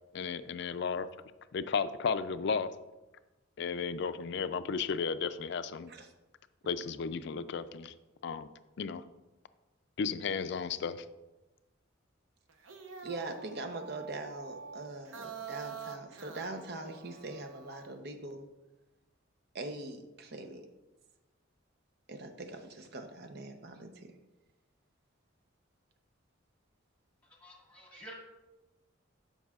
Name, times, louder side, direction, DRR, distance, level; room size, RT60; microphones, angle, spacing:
voice 1, 0.1-1.1 1.5-2.7 3.6-5.9 6.7-7.9 8.2-8.5 8.8-9.0 10.0-11.0, left 5 dB, 60° left, 12 dB, 0.4 m, -34 dB
sound 1, 12.5-18.0, right 6 dB, 85° right, 0.8 m, -47 dB
voice 2, 13.0-18.5 19.5-20.7 22.1-24.2, right 2 dB, 55° right, 6 dB, 0.7 m, -42 dB
voice 3, 27.3-28.1, equal, 5° left, -2 dB, 1.7 m, -50 dB
13.5 x 5.5 x 2.4 m, 1.1 s
head